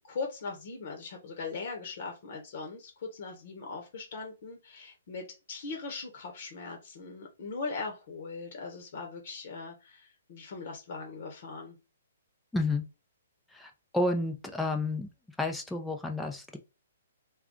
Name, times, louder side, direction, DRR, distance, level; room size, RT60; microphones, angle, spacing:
voice 1, 0.0-11.8, left 4 dB, 55° left, 2 dB, 0.9 m, -40 dB
voice 2, 12.5-12.8 13.5-15.1 15.4-16.6, left 2 dB, 5° left, 3 dB, 0.5 m, -31 dB
2.4 x 2.3 x 3.6 m, 0.27 s
hypercardioid pair, 130°, 0 cm